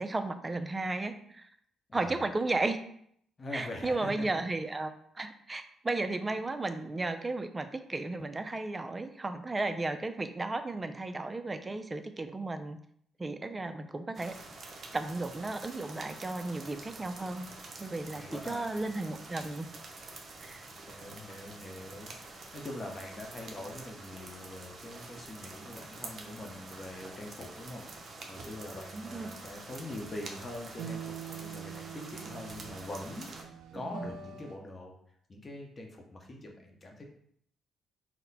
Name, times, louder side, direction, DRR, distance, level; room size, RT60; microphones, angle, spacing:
voice 1, 0.0-1.5 1.9-2.8 3.5-12.8 13.2-14.3 14.9-17.5 17.8-19.7 20.4-20.7 28.9-29.3 33.7-34.1, right 2 dB, 20° right, 8 dB, 0.4 m, -34 dB
voice 2, 3.4-4.1 18.1-18.8 20.9-34.9 35.3-37.0, left 1 dB, 35° left, 1 dB, 0.8 m, -43 dB
sound 1, 14.1-33.4, right 3 dB, 45° right, 0.7 m, -47 dB
sound 2, 30.7-34.6, right 7 dB, 90° right, 0.4 m, -44 dB
4.1 x 2.1 x 4.0 m, 0.67 s
cardioid pair, 90°, 0 cm